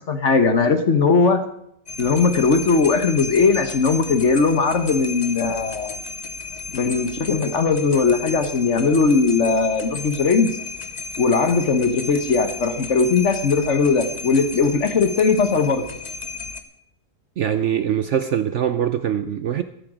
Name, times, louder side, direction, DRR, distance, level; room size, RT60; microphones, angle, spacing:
voice 1, 0.1-1.4 2.0-6.0 6.7-10.6 11.2-15.9, left 4 dB, 50° left, 9 dB, 1.3 m, -19 dB
sound 1, 1.9-16.6, left 4 dB, 30° left, 0.9 m, -34 dB
voice 2, 17.4-19.6, right 9 dB, 60° right, 11 dB, 0.8 m, -22 dB
13.5 x 13.0 x 5.0 m, 0.74 s
omnidirectional pair, 1.7 m